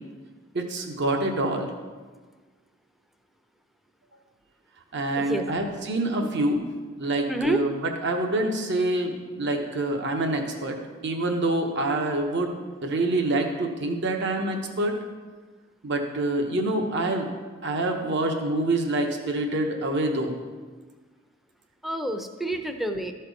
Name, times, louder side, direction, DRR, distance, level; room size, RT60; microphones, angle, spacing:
voice 1, 0.5-1.7 4.9-6.6 7.0-10.8 11.0-14.9 15.8-17.3 17.6-20.4, right 2 dB, 60° right, 4 dB, 1.0 m, -26 dB
voice 2, 7.3-7.6 21.8-23.1, right 1 dB, ahead, 6 dB, 0.5 m, -28 dB
13.5 x 4.4 x 5.2 m, 1.4 s
head